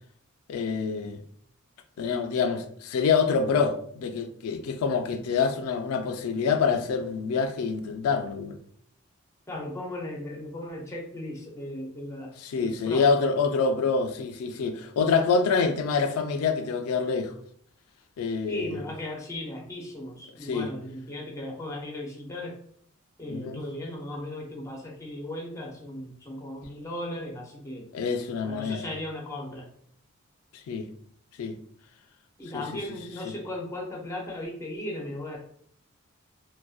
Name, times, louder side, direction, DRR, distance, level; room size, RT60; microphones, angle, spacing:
voice 1, 0.5-1.2 2.0-8.6 12.4-17.4 18.2-18.7 20.4-20.7 23.3-23.6 27.9-28.8 30.7-30.9 31.4-31.6 33.3-33.4, left 5 dB, 85° left, 0.3 m, -26 dB
voice 2, 9.5-13.1 18.5-22.5 23.2-27.9 28.4-29.7 32.4-35.4, left 1 dB, 15° left, 0.5 m, -37 dB
2.5 x 2.2 x 2.3 m
head